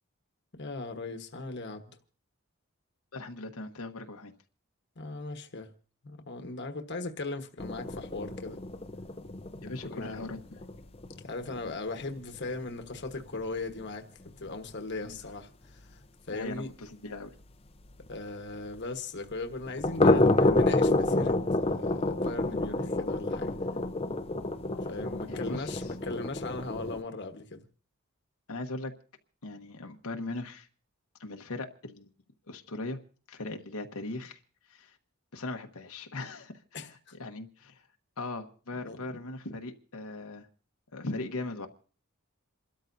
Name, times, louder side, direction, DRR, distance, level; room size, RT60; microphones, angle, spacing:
voice 1, 0.5-1.9 5.0-5.7 6.0-8.6 9.8-10.3 11.2-14.1 14.4-16.0 16.3-16.7 18.1-23.5 24.9-27.6 36.7-37.1 38.8-39.2, left 3 dB, 55° left, 1.2 m, -38 dB
voice 2, 3.1-4.3 9.6-10.6 15.0-15.2 16.3-17.3 25.3-25.9 28.5-28.9 29.4-30.7 31.2-32.1 32.5-33.0 33.3-34.4 34.7-35.0 35.3-37.8 38.2-40.5 40.9-41.7, left 2 dB, 85° left, 1.2 m, -39 dB
sound 1, 7.6-13.5 13.7-13.9 14.3-14.4 14.7-14.8 15.2-15.3 18.1-18.2 19.6-27.0, left 2 dB, 30° left, 0.7 m, -29 dB
28.5 x 13.0 x 2.7 m
head